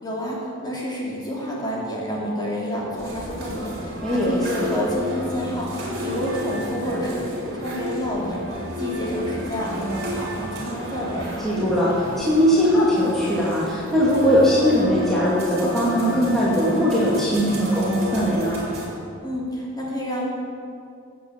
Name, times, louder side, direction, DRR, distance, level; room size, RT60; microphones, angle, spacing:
voice 1, 0.0-11.3 19.2-20.2, equal, 20° left, -5 dB, 3.2 m, -29 dB
sound 1, 3.0-18.9, left 1 dB, 50° right, 4.3 m, -31 dB
voice 2, 4.0-4.7 11.4-11.9 12.2-18.6, equal, ahead, -9 dB, 2.5 m, -20 dB
15.5 x 8.5 x 7.6 m, 2.4 s
head